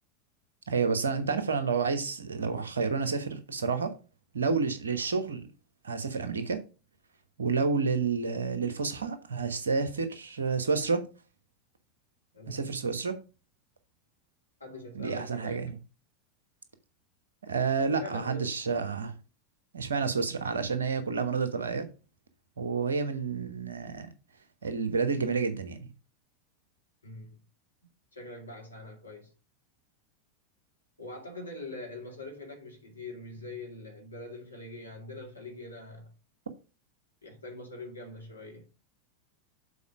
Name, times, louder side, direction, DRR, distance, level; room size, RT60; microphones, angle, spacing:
voice 1, 0.7-3.9 4.3-5.5 5.8-6.6 7.4-11.1 12.5-13.2 14.9-15.7 17.4-19.1 19.7-21.9 22.6-24.1 24.6-25.9, right 5 dB, 70° right, 1.1 m, -29 dB
voice 2, 12.3-12.7 14.6-15.7 18.0-18.5 27.0-27.4 28.1-29.3 31.0-36.1 37.2-38.7, left 2 dB, 80° left, 2.1 m, -43 dB
7.0 x 4.4 x 5.0 m
figure-of-eight pair, 85°, 0 cm